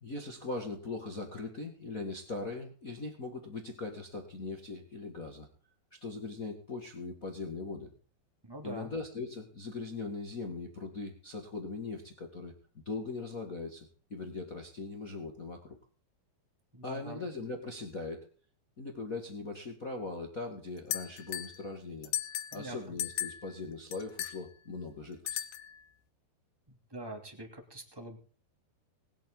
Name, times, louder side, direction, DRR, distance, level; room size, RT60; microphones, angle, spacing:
voice 1, 0.0-5.5 6.0-7.9 8.6-15.8 16.8-18.3 18.8-22.1 22.5-25.4, left 3 dB, 55° left, 3 dB, 0.9 m, -40 dB
voice 2, 8.4-8.9 16.7-17.2 22.5-22.8 26.7-28.2, right 1 dB, 10° right, 4 dB, 1.5 m, -44 dB
sound 1, 20.9-21.6 22.0-22.7 23.0-23.5 23.9-24.4 25.3-25.8, left 12 dB, 85° left, 1.6 m, -36 dB
20.0 x 10.0 x 3.8 m, 0.41 s
omnidirectional pair, 5.0 m